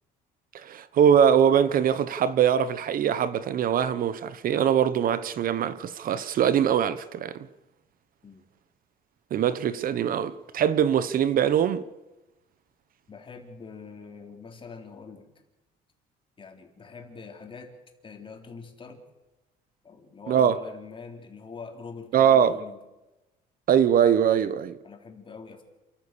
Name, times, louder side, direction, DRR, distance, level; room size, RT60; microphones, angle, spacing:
voice 1, 0.5-7.4 9.3-11.8 20.3-20.6 22.1-22.6 23.7-24.8, right 8 dB, 55° right, 1.0 m, -22 dB
voice 2, 13.1-15.3 16.4-17.7 18.0-19.0 19.8-22.8 24.8-25.6, left 5 dB, 30° left, 4.0 m, -44 dB
28.5 x 14.5 x 6.9 m
cardioid pair, 110°, 17 cm